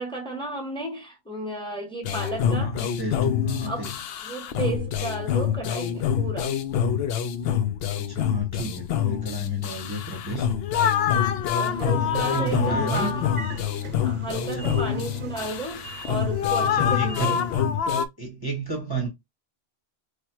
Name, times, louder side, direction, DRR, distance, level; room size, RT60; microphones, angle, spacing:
voice 1, 0.0-2.8 3.6-3.9 4.2-6.5 11.6-13.3 14.0-17.5, right 2 dB, 5° left, 1.0 m, -33 dB
sound 1, 2.0-18.1, left 8 dB, 70° left, 0.7 m, -26 dB
voice 2, 2.4-3.9 7.9-10.5 12.0-13.1 14.4-14.8 16.6-17.4 18.2-19.1, right 3 dB, 25° right, 0.9 m, -32 dB
Train / Sliding door, 11.3-17.8, right 4 dB, 55° right, 0.8 m, -41 dB
3.2 x 2.4 x 4.4 m
omnidirectional pair, 1.1 m